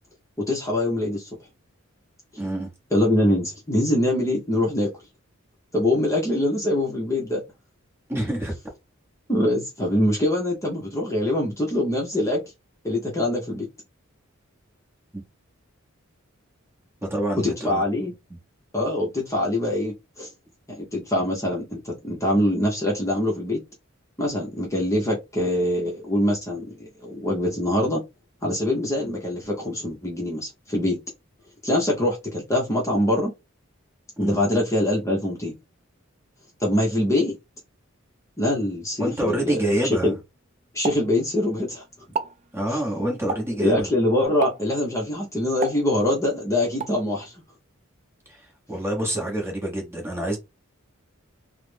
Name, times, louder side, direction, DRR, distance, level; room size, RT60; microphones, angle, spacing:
voice 1, 0.4-1.3 2.9-4.9 5.7-7.4 9.3-12.4 12.8-13.7 17.4-18.1 18.7-20.3 20.7-23.6 24.2-28.0 28.4-31.0 31.6-33.3 34.2-35.5 36.6-37.4 38.4-40.1 40.7-41.8 42.7-42.8 43.6-47.3, left 1 dB, 15° left, 0.7 m, -24 dB
voice 2, 2.4-2.7 8.1-8.5 17.0-17.8 34.2-34.4 39.0-40.1 42.5-43.9 48.3-50.4, right 1 dB, 10° right, 0.9 m, -27 dB
Explosion, 40.8-41.7 42.0-42.4 43.3-43.7 44.4-44.8 45.6-46.3 46.8-47.0, right 4 dB, 35° right, 0.4 m, -31 dB
3.1 x 2.0 x 3.2 m
head